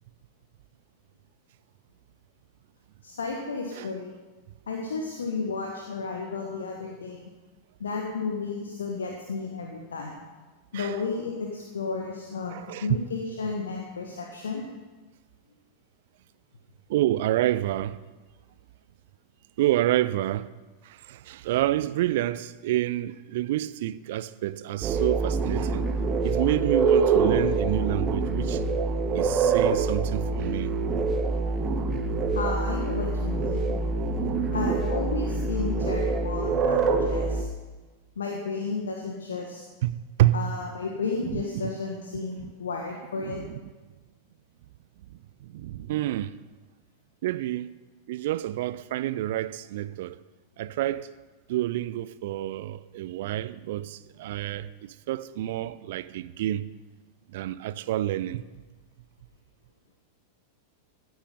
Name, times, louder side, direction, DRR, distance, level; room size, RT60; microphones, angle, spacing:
voice 1, 3.0-4.1 4.7-7.2 7.8-10.2 10.7-12.5 12.8-14.6 32.3-33.7 34.5-37.5 38.1-39.6 40.3-43.4, left 4 dB, 70° left, 1.4 m, -32 dB
voice 2, 12.5-12.9 16.9-18.0 19.6-20.5 20.8-25.9 26.2-28.6 29.1-30.7 39.8-40.4 41.3-41.7 42.4-42.5 43.2-43.6 45.4-46.3 47.2-47.7 48.1-50.1 50.6-51.1 51.5-56.7 57.3-58.4, right 14 dB, 55° right, 0.5 m, -28 dB
sound 1, 24.8-37.4, right 4 dB, 30° right, 1.3 m, -25 dB
16.0 x 9.7 x 5.4 m
figure-of-eight pair, 90°, 0 cm